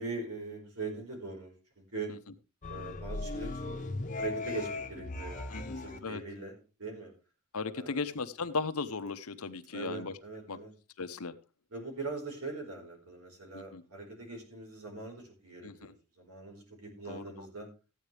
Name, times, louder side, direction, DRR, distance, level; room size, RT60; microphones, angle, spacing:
voice 1, 0.0-2.1 2.7-3.8 4.2-7.1 7.7-8.0 9.7-10.7 11.7-15.9 16.2-17.7, right 3 dB, 80° right, 1 dB, 4.7 m, -41 dB
sound 1, 2.6-6.0, left 2 dB, 35° left, 1.0 m, -38 dB
voice 2, 5.5-6.2 7.5-10.2 10.5-10.6 11.0-11.3 13.5-13.8 15.6-15.9 17.1-17.5, left 4 dB, 75° left, 11 dB, 0.9 m, -37 dB
14.5 x 9.3 x 3.4 m, 0.32 s
head